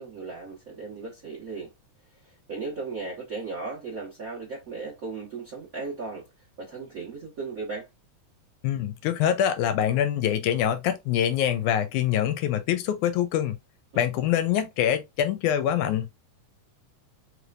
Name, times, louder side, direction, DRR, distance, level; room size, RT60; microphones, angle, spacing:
voice 1, 0.0-1.7 2.2-6.3 6.6-7.9, right 4 dB, 75° right, 0.7 m, -36 dB
voice 2, 8.6-13.6 14.0-16.1, left 10 dB, 80° left, 2.1 m, -25 dB
4.6 x 3.3 x 2.5 m
omnidirectional pair, 3.5 m